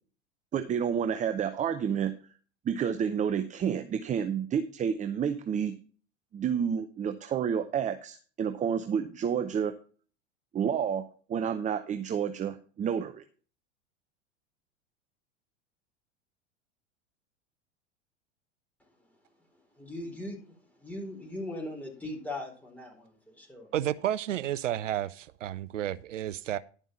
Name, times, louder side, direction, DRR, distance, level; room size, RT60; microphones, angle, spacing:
voice 1, 0.5-2.1 2.6-5.7 6.3-9.8 10.5-13.2, right 8 dB, 20° right, 0.6 m, -30 dB
voice 2, 19.8-20.4 20.8-23.7, left 1 dB, 5° left, 4.3 m, -39 dB
voice 3, 23.7-26.6, right 11 dB, 85° right, 0.5 m, -31 dB
11.0 x 5.4 x 5.7 m
hypercardioid pair, 90°, 37 cm